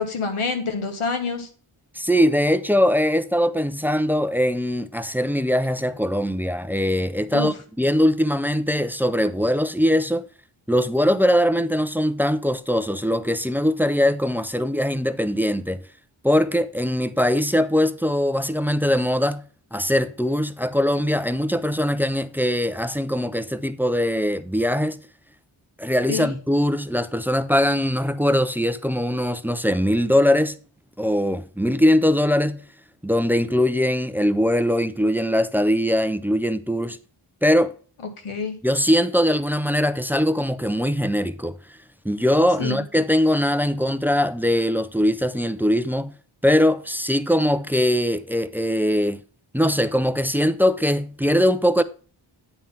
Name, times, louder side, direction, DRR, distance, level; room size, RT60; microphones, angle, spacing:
voice 1, 0.0-1.5 7.3-7.5 26.1-26.3 38.2-38.5 42.6-42.8, left 4 dB, 85° left, 1.5 m, -26 dB
voice 2, 1.9-10.3 10.7-15.8 16.2-19.4 19.7-25.0 25.8-30.6 31.0-32.6 33.0-37.0 37.4-37.7 38.6-41.6 42.0-46.1 46.4-49.2 49.5-51.8, equal, 5° right, 0.3 m, -21 dB
9.0 x 3.8 x 5.6 m
wide cardioid pair, 85°, 49 cm